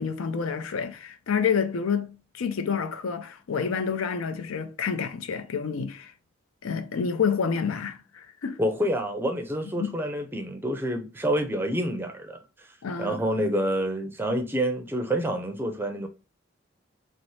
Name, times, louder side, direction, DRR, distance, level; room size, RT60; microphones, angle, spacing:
voice 1, 0.0-6.1 6.6-8.6 9.8-9.9 12.8-13.3, left 6 dB, 85° left, 0.5 m, -28 dB
voice 2, 8.6-12.4 13.0-16.1, right 1 dB, 10° right, 0.4 m, -27 dB
4.1 x 2.0 x 3.1 m
head